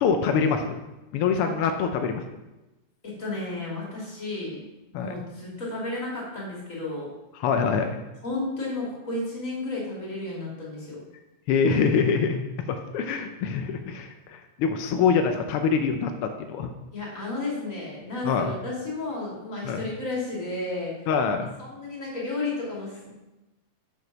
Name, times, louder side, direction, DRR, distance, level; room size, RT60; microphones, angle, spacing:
voice 1, 0.0-0.8 1.1-2.2 4.9-5.1 7.4-8.0 11.5-12.4 12.7-16.7 18.2-18.5 19.6-19.8 21.1-21.5, left 6 dB, 90° left, 6 dB, 1.2 m, -24 dB
voice 2, 3.0-4.6 4.9-7.1 8.2-11.0 16.9-23.1, left 2 dB, 25° left, -5 dB, 2.9 m, -33 dB
6.7 x 6.6 x 6.0 m, 1.0 s
omnidirectional pair, 3.4 m